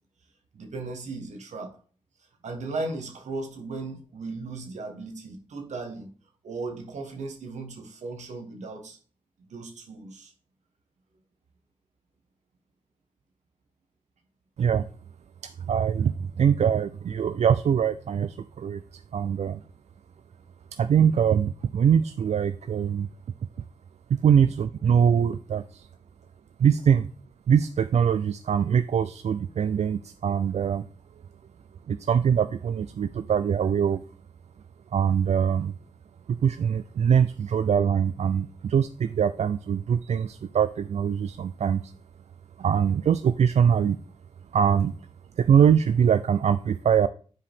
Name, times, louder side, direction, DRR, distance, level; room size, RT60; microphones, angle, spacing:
voice 1, 0.5-1.8 2.4-6.1 6.4-9.0 9.5-10.3, right 3 dB, 85° right, 1.4 m, -36 dB
voice 2, 15.7-19.6 20.7-23.1 24.2-25.9 26.6-27.1 27.5-30.9 31.9-34.0 34.9-35.7 36.3-41.9 42.6-44.0 44.5-44.9 45.4-47.1, right 8 dB, 70° right, 0.4 m, -23 dB
9.5 x 4.9 x 3.5 m
cardioid pair, 55°, 12 cm